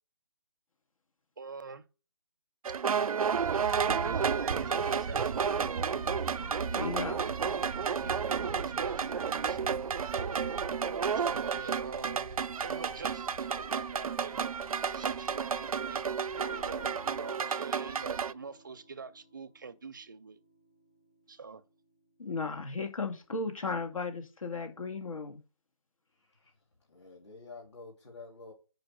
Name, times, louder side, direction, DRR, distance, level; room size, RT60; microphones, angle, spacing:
voice 1, 1.4-1.9 3.4-5.6 6.8-7.7 8.0-9.6 10.2-10.6 10.9-14.5 14.9-16.1 16.6-20.4 21.3-21.6, right 5 dB, 35° right, 0.5 m, -45 dB
sound 1, 2.6-18.3, right 6 dB, 85° right, 0.4 m, -31 dB
sound 2, 3.4-16.9, left 1 dB, 30° left, 1.8 m, -50 dB
voice 2, 6.7-7.1 22.2-25.4, left 4 dB, 70° left, 2.2 m, -35 dB
sound 3, 16.3-22.4, left 1 dB, 10° left, 0.6 m, -54 dB
voice 3, 26.1-28.5, left 3 dB, 50° left, 3.2 m, -50 dB
5.2 x 5.0 x 6.0 m
hypercardioid pair, 170°, 18 cm